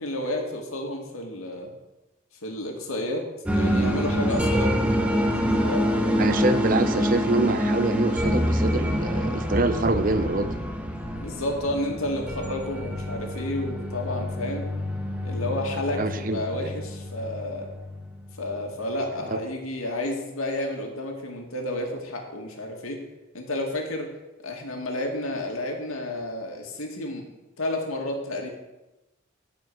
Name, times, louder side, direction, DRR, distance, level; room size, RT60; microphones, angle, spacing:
voice 1, 0.0-1.7 2.4-3.3 3.5-6.4 11.2-14.7 15.2-17.7 18.4-23.0 23.3-24.1 24.4-27.3 27.6-28.5, left 1 dB, 90° left, 1 dB, 2.2 m, -31 dB
sound 1, 3.5-18.6, equal, 5° right, 0.9 m, -26 dB
voice 2, 6.2-10.5 15.9-16.7 19.3-19.4, right 2 dB, 40° right, 10 dB, 0.6 m, -25 dB
14.5 x 5.0 x 6.2 m, 1.0 s
head